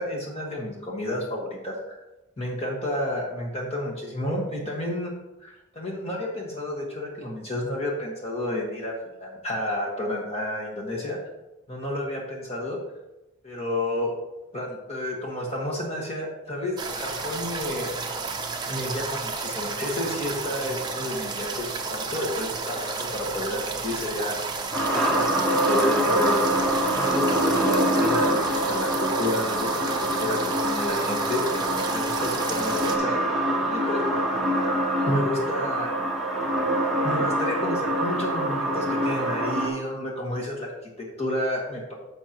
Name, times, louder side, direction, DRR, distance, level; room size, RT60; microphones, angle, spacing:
voice 1, 0.0-2.0 2.4-5.1 5.4-8.9 9.2-11.2 11.7-12.8 13.4-14.1 14.5-17.9 18.7-24.4 24.9-25.3 25.7-26.4 26.9-33.2 33.7-34.0 35.0-35.9 37.0-41.9, left 1 dB, 30° left, -2 dB, 1.6 m, -30 dB
sound 1, 16.8-33.0, right 4 dB, 20° right, 0.7 m, -32 dB
sound 2, 24.7-39.7, right 1 dB, ahead, 1.1 m, -25 dB
10.0 x 6.6 x 3.0 m, 0.98 s
head